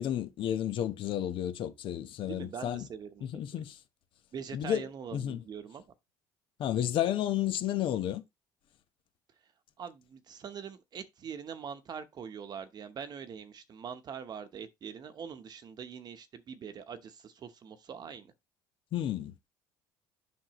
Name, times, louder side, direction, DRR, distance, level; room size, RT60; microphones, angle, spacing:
voice 1, 0.0-2.8 3.2-3.8 4.5-4.8 5.1-5.4 6.6-8.2 18.9-19.3, left 11 dB, 60° left, 1.1 m, -31 dB
voice 2, 2.2-3.2 3.5-3.6 4.3-5.8 9.8-18.3, right 7 dB, 45° right, 1.0 m, -43 dB
7.6 x 6.1 x 3.1 m
supercardioid pair, 100°, 10 cm